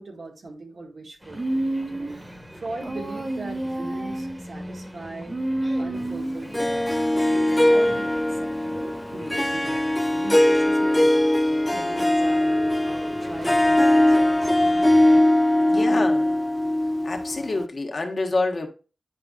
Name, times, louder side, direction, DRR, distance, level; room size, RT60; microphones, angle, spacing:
voice 1, 0.0-2.1 2.5-5.3 5.8-11.3 11.7-14.5 15.7-16.1, right 2 dB, 80° right, 2.0 m, -39 dB
sound 1, 1.2-15.2, equal, 20° right, 1.6 m, -43 dB
Human voice, 1.3-2.3 2.8-4.4 5.3-6.5, right 1 dB, 50° right, 1.4 m, -29 dB
Harp, 6.5-17.7, left 1 dB, 10° left, 0.6 m, -21 dB
voice 2, 15.7-16.2 17.0-18.7, left 3 dB, 60° left, 1.5 m, -27 dB
9.8 x 5.0 x 2.5 m
wide cardioid pair, 60°, 0 cm